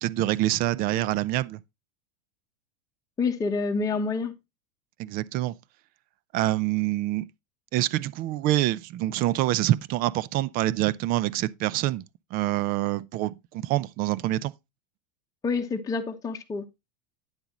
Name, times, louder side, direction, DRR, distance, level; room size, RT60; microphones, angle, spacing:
voice 1, 0.0-1.6 5.0-5.5 6.3-7.2 7.7-12.0 12.3-14.5, right 15 dB, 45° right, 0.6 m, -26 dB
voice 2, 3.2-4.3 15.4-16.6, left 4 dB, 15° left, 1.1 m, -27 dB
9.8 x 7.8 x 2.9 m
supercardioid pair, 130°, 21 cm